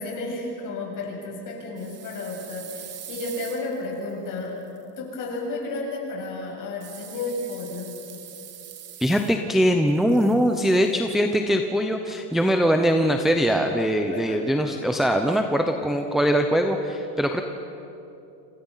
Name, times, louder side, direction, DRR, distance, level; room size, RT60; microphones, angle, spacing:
voice 1, 0.0-4.6 5.0-8.0 14.1-14.6, left 2 dB, 40° left, -1 dB, 7.8 m, -32 dB
sound 1, 1.8-4.8 6.8-9.6 9.9-10.9, right 9 dB, 30° right, 1.8 m, -43 dB
voice 2, 9.0-17.4, equal, ahead, 3 dB, 0.9 m, -22 dB
27.5 x 27.0 x 5.8 m, 2.9 s
supercardioid pair, 145°, 50 cm